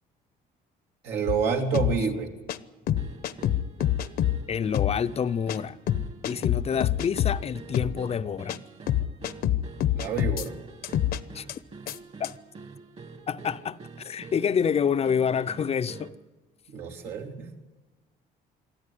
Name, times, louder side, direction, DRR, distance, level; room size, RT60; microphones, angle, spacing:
voice 1, 1.0-2.3 9.9-10.5 16.7-17.5, right 6 dB, 85° right, 3.1 m, -28 dB
sound 1, 1.3-1.4 1.7-2.0 2.5-2.6 2.9-4.4 4.7-4.9 5.5-5.6 5.9-7.4 7.7-7.9 8.5-8.6 8.9-10.5 10.8-11.2 11.5-11.6 11.9-12.0 12.2-12.3, left 12 dB, 65° left, 0.9 m, -25 dB
sound 2, 3.0-16.3, right 4 dB, 40° right, 1.7 m, -46 dB
voice 2, 4.5-5.8 6.2-8.6 11.3-11.5 12.2-12.3 13.3-13.8 14.0-16.1, left 7 dB, 35° left, 0.6 m, -27 dB
24.5 x 13.0 x 9.9 m
cardioid pair, 110°, 17 cm